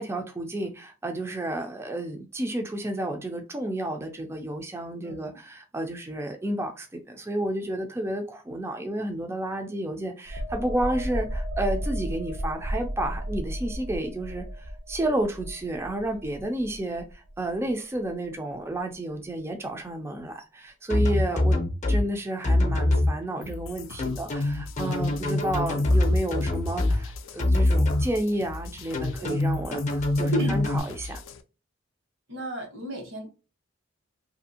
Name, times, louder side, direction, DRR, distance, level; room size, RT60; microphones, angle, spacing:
voice 1, 0.0-31.2, right 1 dB, 15° right, 0.3 m, -31 dB
voice 2, 5.0-5.4 29.2-29.5 30.3-30.7 32.3-33.3, equal, 85° right, 1.2 m, -33 dB
sound 1, 10.3-17.7 18.1-18.3, equal, 65° right, 0.6 m, -34 dB
sound 2, 20.9-22.0 22.4-23.1 24.0-27.0 27.4-28.0 28.9-30.8, left 1 dB, 40° left, 0.6 m, -23 dB
sound 3, 23.4-31.4, left 3 dB, 80° left, 0.4 m, -41 dB
2.7 x 2.5 x 2.7 m
head